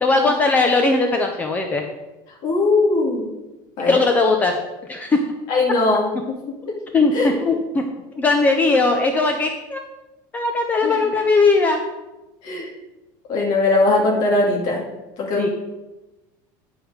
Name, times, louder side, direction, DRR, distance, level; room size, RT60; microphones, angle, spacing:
voice 1, 0.0-1.8 3.9-4.6 4.9-5.2 6.9-7.8 8.2-9.8 10.3-11.8 15.4-15.5, left 3 dB, 15° left, 4 dB, 0.5 m, -19 dB
voice 2, 2.4-3.3 3.8-4.1 5.5-6.4 6.7-6.8 7.1-7.3 10.8-11.0 12.4-12.7 13.3-14.8 15.2-15.5, left 2 dB, 45° left, -1 dB, 2.2 m, -20 dB
9.9 x 4.8 x 4.9 m, 1.0 s
cardioid pair, 170°, 11 cm